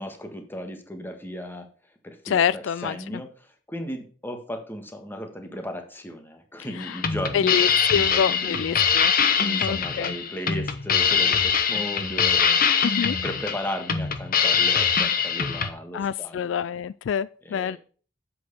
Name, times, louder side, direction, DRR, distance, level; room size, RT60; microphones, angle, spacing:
voice 1, 0.0-1.7 2.0-8.8 9.4-16.6 17.4-17.8, equal, 10° left, 1.6 m, -36 dB
voice 2, 2.3-3.0 7.3-9.1 9.6-10.1 12.8-13.2 15.9-17.8, left 7 dB, 75° left, 0.3 m, -26 dB
sound 1, 6.8-15.7, left 7 dB, 50° left, 1.0 m, -23 dB
7.7 x 6.2 x 6.8 m
head